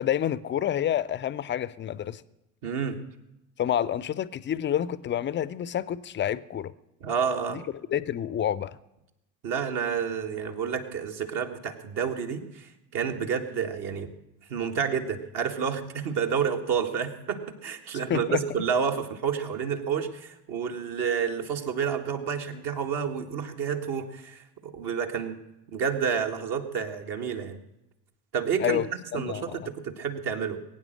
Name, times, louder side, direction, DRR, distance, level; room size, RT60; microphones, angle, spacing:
voice 1, 0.0-2.2 3.6-6.7 7.5-7.6 7.9-8.8 18.1-18.4 28.6-28.9 29.1-29.7, left 10 dB, 25° left, 18 dB, 0.5 m, -28 dB
voice 2, 2.6-3.0 7.0-7.6 9.4-14.1 14.5-25.4 25.7-27.6 28.3-28.8 29.1-30.6, right 7 dB, 50° right, 4 dB, 1.7 m, -29 dB
20.5 x 9.3 x 6.4 m, 0.91 s
figure-of-eight pair, 60°, 50 cm